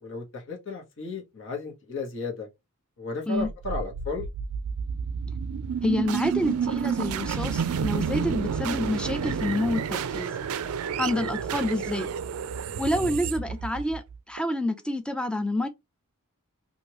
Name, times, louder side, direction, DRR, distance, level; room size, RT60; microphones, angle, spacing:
voice 1, 0.0-2.5 3.0-4.2 12.9-13.1, left 3 dB, 60° left, 1.1 m, -34 dB
sound 1, 3.4-14.4, right 6 dB, 75° right, 0.4 m, -30 dB
voice 2, 5.8-10.3 11.0-12.1 12.8-14.0 14.3-15.7, left 1 dB, 5° left, 0.4 m, -28 dB
2.9 x 2.6 x 2.9 m
head